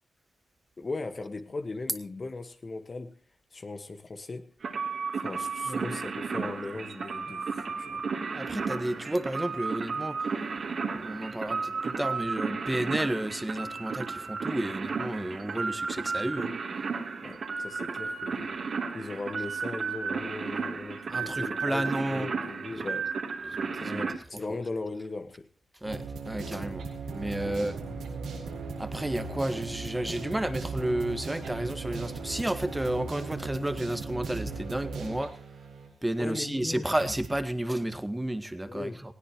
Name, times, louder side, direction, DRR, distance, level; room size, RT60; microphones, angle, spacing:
voice 1, 0.8-3.2 3.5-4.5 5.2-8.0 17.2-18.5 18.9-23.2 23.8-25.5 27.4-27.6 36.2-36.9 38.7-39.0, left 3 dB, 45° left, 1.5 m, -38 dB
sound 1, 4.6-24.1, right 5 dB, 65° right, 3.2 m, -33 dB
voice 2, 8.3-10.2 10.9-16.5 21.1-22.3 22.8-22.9 23.5-24.0 24.5-24.6 25.8-26.8 27.1-27.8 28.8-35.3 36.0-38.9, right 1 dB, 15° right, 1.8 m, -32 dB
sound 2, 25.8-35.9 36.4-36.5 36.9-37.4, right 4 dB, 90° right, 4.5 m, -38 dB
19.5 x 17.0 x 3.1 m
supercardioid pair, 45°, 0 cm